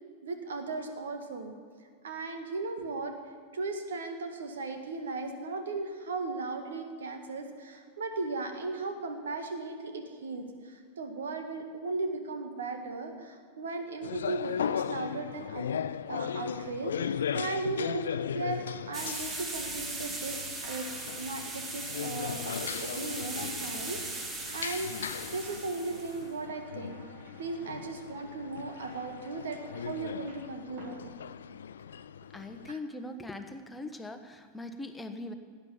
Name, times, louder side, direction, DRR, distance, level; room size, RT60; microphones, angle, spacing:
voice 1, 0.2-1.5 2.0-3.1 3.5-15.7 16.1-20.9 21.2-24.9 25.3-27.0 27.4-31.1 32.7-32.8, right 3 dB, 65° right, 6 dB, 1.9 m, -37 dB
sound 1, 14.0-32.7, left 8 dB, 65° left, 0.4 m, -38 dB
sound 2, 18.9-26.2, right 3 dB, 25° right, 2.0 m, -39 dB
sound 3, 20.6-31.8, right 4 dB, 50° right, 2.1 m, -56 dB
voice 2, 32.3-35.3, left 2 dB, 10° left, 6 dB, 1.3 m, -41 dB
18.0 x 9.3 x 7.1 m, 2.1 s
figure-of-eight pair, 90°, 0 cm